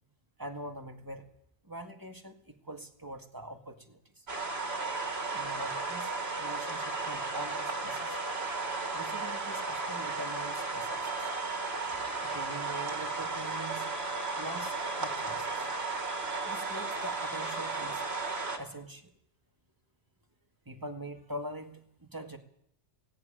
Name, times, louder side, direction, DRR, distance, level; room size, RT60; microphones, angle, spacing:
voice 1, 0.4-1.3 1.6-4.3 5.3-6.1 6.4-8.2 8.9-11.3 11.9-13.9 14.4-15.7 16.4-18.1 18.6-19.1 20.7-22.4, right 1 dB, 15° right, 4 dB, 2.0 m, -43 dB
sound 1, 4.3-18.6, right 3 dB, 55° right, 2.3 m, -34 dB
18.0 x 17.0 x 8.9 m, 0.72 s
omnidirectional pair, 1.2 m